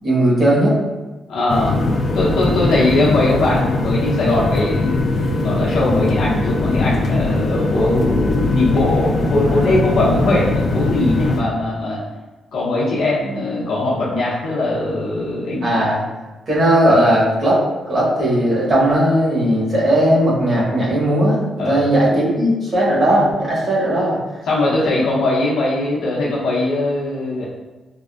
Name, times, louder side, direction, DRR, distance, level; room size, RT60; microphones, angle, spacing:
voice 1, 0.0-0.8 9.5-9.7 15.6-16.0 16.5-17.6 17.9-21.4 21.6-24.2, right 1 dB, 40° right, -7 dB, 1.1 m, -17 dB
voice 2, 1.3-1.8 2.1-12.0 12.5-15.8 21.6-21.8 24.5-27.4, left 2 dB, 75° left, -7 dB, 0.7 m, -20 dB
sound 1, 1.5-11.4, left 2 dB, 50° left, 0.3 m, -20 dB
3.5 x 2.1 x 2.4 m, 1.2 s
cardioid pair, 140°, 0 cm